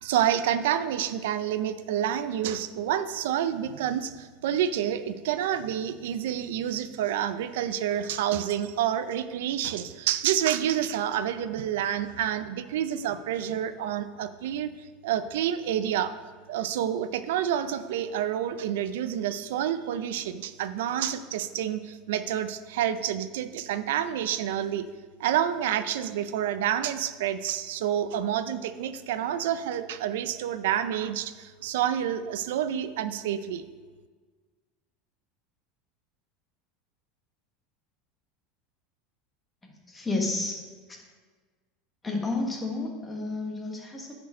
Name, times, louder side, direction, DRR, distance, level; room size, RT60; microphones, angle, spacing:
voice 1, 0.0-14.7 15.0-16.1 16.5-24.8 25.2-33.6, right 10 dB, 85° right, 12 dB, 0.5 m, -28 dB
voice 2, 39.6-40.6 40.9-41.0 42.0-44.1, left 2 dB, 15° left, 1 dB, 1.4 m, -31 dB
9.3 x 4.5 x 5.1 m, 1.4 s
supercardioid pair, 150°, 0 cm